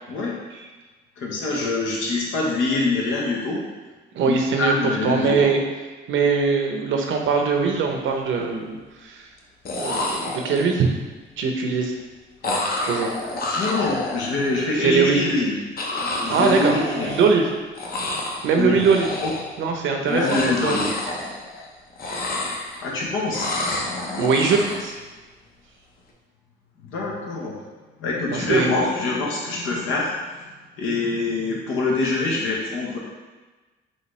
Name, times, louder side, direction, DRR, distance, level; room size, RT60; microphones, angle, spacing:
voice 1, 1.2-3.6 4.2-5.5 13.6-15.5 16.2-17.1 18.5-18.8 19.2-19.3 20.1-21.0 22.8-23.7 24.0-24.1 26.9-27.6 28.0-30.1 30.8-33.0, left 3 dB, 85° left, -3 dB, 1.1 m, -24 dB
voice 2, 4.1-5.6 6.1-9.2 9.8-10.9 11.4-11.9 12.8-13.1 14.8-15.2 16.3-16.7 17.0-17.5 18.4-19.1 19.6-20.7 24.2-24.9 28.3-28.8, right 5 dB, 75° right, 3 dB, 0.7 m, -21 dB
sound 1, 7.2-7.4 7.8-8.4 9.4-9.5 9.7-10.9 12.4-14.6 15.8-17.5 17.7-18.5 18.8-19.6 20.0-21.7 21.9-23.0 23.3-24.9, left 2 dB, 50° left, 0.8 m, -29 dB
5.6 x 2.9 x 3.2 m, 1.3 s
cardioid pair, 90°, 20 cm